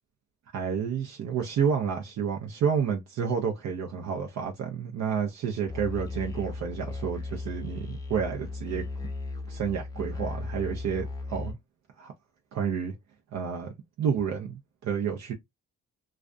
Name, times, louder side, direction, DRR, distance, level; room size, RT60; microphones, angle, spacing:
voice 1, 0.5-8.9 9.5-11.6 12.0-12.1 12.5-12.9 13.3-13.7 14.0-15.3, right 7 dB, 60° right, 0.6 m, -30 dB
Musical instrument, 5.7-11.5, left 3 dB, 10° left, 0.6 m, -36 dB
2.4 x 2.2 x 2.4 m
cardioid pair, 90°, 30 cm